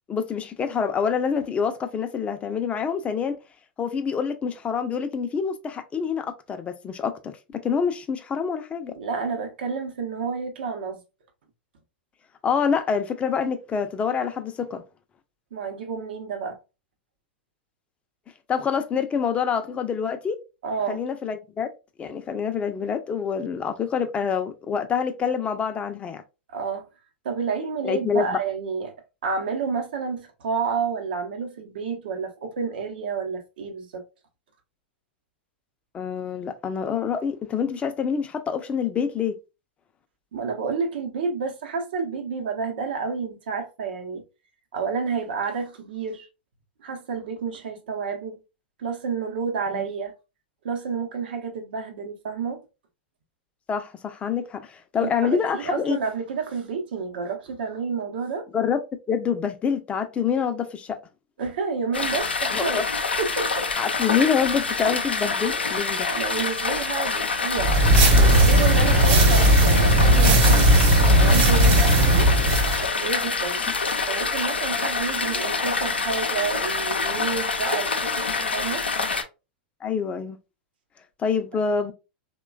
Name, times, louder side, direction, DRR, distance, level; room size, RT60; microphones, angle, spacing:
voice 1, 0.1-3.4 3.8-7.4 7.6-8.9 12.4-14.8 18.5-20.4 20.9-21.7 22.0-26.2 27.8-28.4 35.9-39.4 49.7-49.9 53.7-56.0 58.5-58.8 59.1-61.0 62.5-62.8 63.8-66.1 79.8-80.4 81.2-81.9, left 6 dB, 20° left, 0.5 m, -26 dB
voice 2, 9.0-11.0 15.5-16.6 20.6-21.0 26.5-26.9 27.2-28.9 29.2-34.0 40.3-44.2 44.7-46.3 46.8-48.4 48.8-50.1 50.6-52.6 55.0-58.5 61.4-62.9 63.2-63.7 66.1-70.7 71.0-72.3 72.8-73.6 74.1-78.9, right 5 dB, 70° right, 0.7 m, -30 dB
sound 1, 61.9-79.2, left 4 dB, 90° left, 0.5 m, -26 dB
sound 2, 67.6-72.8, right 1 dB, 50° right, 1.1 m, -17 dB
3.0 x 2.2 x 2.3 m
hypercardioid pair, 100°, 6 cm